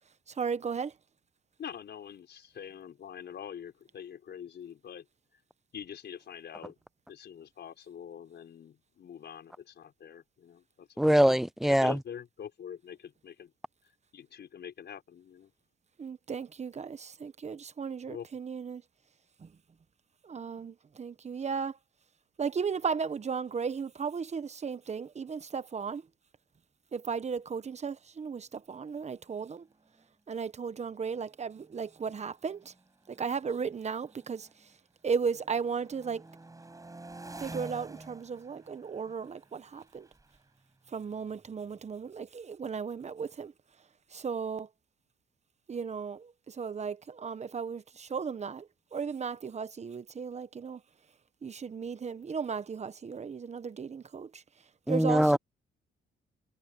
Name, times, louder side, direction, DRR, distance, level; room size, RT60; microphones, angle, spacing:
voice 1, 0.3-0.9 16.0-18.8 19.4-19.5 20.2-21.8 22.4-26.0 26.9-29.7 30.3-32.7 33.1-34.7 35.0-36.2 37.4-40.1 40.9-43.5 44.1-44.7 45.7-50.8 51.4-54.4 54.9-55.4, right 6 dB, 35° right, 1.1 m, -35 dB
voice 2, 1.6-5.1 5.3-5.4 5.7-6.8 7.1-11.1 11.6-13.5 14.1-15.5 18.1-18.3, left 8 dB, 60° left, 4.5 m, -45 dB
voice 3, 11.0-12.0 54.9-55.4, equal, ahead, 0.4 m, -23 dB
sound 1, 29.4-29.5 29.7-30.1 30.8-34.7 35.1-41.7, right 2 dB, 15° right, 7.0 m, -50 dB
cardioid pair, 90°, 20 cm